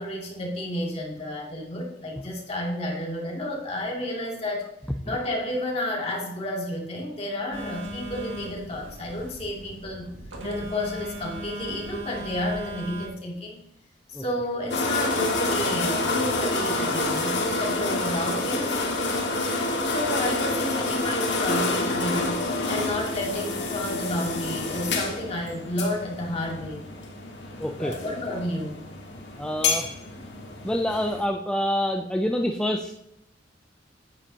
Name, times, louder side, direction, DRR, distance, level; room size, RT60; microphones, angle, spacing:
voice 1, 0.0-4.7 5.0-10.1 10.4-13.6 14.1-18.8 19.3-19.5 19.8-26.8 27.8-28.8, left 1 dB, 35° left, -2 dB, 2.5 m, -31 dB
Telephone, 7.5-13.1, right 1 dB, 85° right, 2.0 m, -38 dB
sound 1, 14.7-31.2, left 2 dB, 65° left, 1.8 m, -28 dB
voice 2, 27.6-27.9 29.4-29.9 30.6-33.0, equal, 5° left, 3 dB, 0.4 m, -26 dB
10.0 x 9.7 x 2.8 m, 0.80 s
head